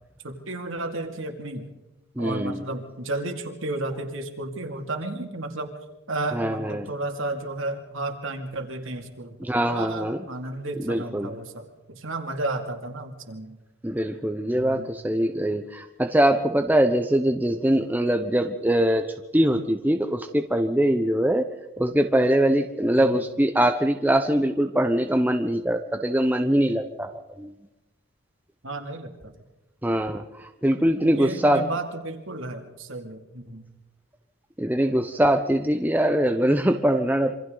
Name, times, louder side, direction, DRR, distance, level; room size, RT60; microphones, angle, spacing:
voice 1, 0.2-1.7 2.2-5.8 6.1-9.4 9.7-13.6 14.5-14.9 22.9-23.2 28.6-29.3 31.1-33.6, right 2 dB, 65° right, 4 dB, 2.5 m, -33 dB
voice 2, 2.2-2.6 6.3-6.9 9.4-10.2 10.9-11.3 13.8-19.1 19.3-21.5 21.8-27.1 27.4-27.5 29.8-31.7 34.6-37.3, right 1 dB, 10° right, 6 dB, 0.7 m, -22 dB
27.0 x 25.5 x 3.9 m, 1.0 s
head